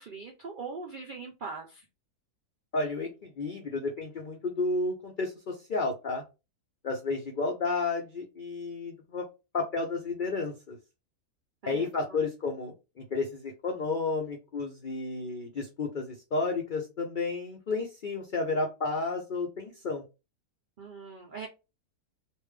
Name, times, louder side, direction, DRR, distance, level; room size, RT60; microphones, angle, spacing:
voice 1, 0.0-1.9 11.6-12.2 20.8-21.5, right 4 dB, 85° right, 2 dB, 0.4 m, -41 dB
voice 2, 2.7-6.2 6.8-9.2 9.5-10.8 11.7-20.0, left 3 dB, 75° left, 1 dB, 0.4 m, -32 dB
3.3 x 2.5 x 3.2 m, 0.28 s
omnidirectional pair, 1.7 m